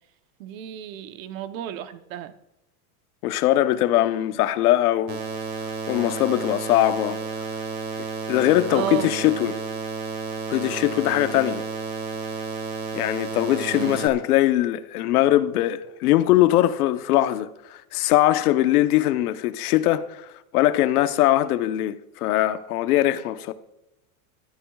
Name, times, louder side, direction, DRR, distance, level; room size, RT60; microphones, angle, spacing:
voice 1, 0.4-2.3 8.7-9.1 13.7-14.0, right 11 dB, 65° right, 0.9 m, -32 dB
voice 2, 3.2-5.2 5.9-7.2 8.3-9.6 10.5-11.6 12.9-20.3 20.5-23.5, left 14 dB, 85° left, 1.0 m, -21 dB
sound 1, 5.1-14.1, right 4 dB, 30° right, 1.7 m, -31 dB
21.5 x 12.5 x 2.4 m
supercardioid pair, 165°, 44 cm